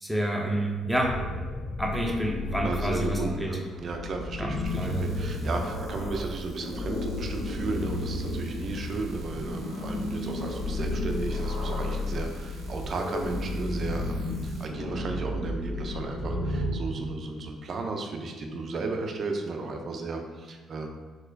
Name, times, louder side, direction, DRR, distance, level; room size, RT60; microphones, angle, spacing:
voice 1, 0.0-1.1 1.8-3.5 4.4-5.0, right 1 dB, ahead, -2 dB, 0.5 m, -29 dB
sound 1, 0.8-16.7, left 1 dB, 70° left, 0.8 m, -32 dB
voice 2, 2.6-20.9, right 3 dB, 55° right, 3 dB, 0.4 m, -34 dB
sound 2, 4.6-14.6, right 1 dB, 85° right, 0.9 m, -53 dB
4.0 x 2.1 x 2.6 m, 1.4 s
supercardioid pair, 60°, 0 cm